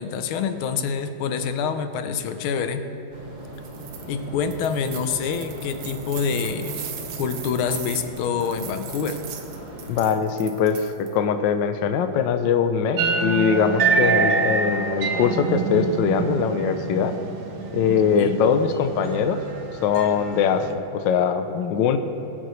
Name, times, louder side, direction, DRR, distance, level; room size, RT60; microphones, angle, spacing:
voice 1, 0.0-2.8 4.1-6.8 7.2-9.2 18.1-18.4, left 6 dB, 90° left, 9 dB, 1.6 m, -26 dB
sound 1, 3.1-10.1, right 1 dB, 25° right, 1.3 m, -38 dB
sound 2, 3.5-4.1 4.4-11.1, right 8 dB, 80° right, 1.7 m, -39 dB
voice 2, 9.9-17.1 17.7-19.4 19.8-22.0, left 6 dB, 70° left, 8 dB, 1.3 m, -22 dB
sound 3, 13.0-20.7, right 4 dB, 60° right, 1.4 m, -26 dB
21.0 x 8.0 x 3.2 m, 2.9 s
omnidirectional pair, 2.2 m